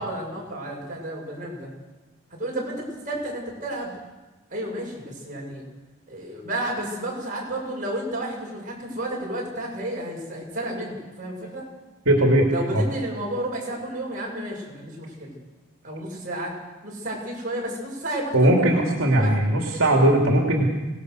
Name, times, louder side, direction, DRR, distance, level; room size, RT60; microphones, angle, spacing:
voice 1, 0.0-1.7 2.3-3.9 4.5-5.6 6.1-11.6 12.5-15.3 15.8-16.5 16.8-19.3, right 1 dB, 35° right, -2 dB, 7.5 m, -31 dB
voice 2, 12.1-12.5 12.7-12.9 18.3-20.7, right 1 dB, 75° right, 0 dB, 3.1 m, -19 dB
25.5 x 19.0 x 6.7 m, 1.2 s
head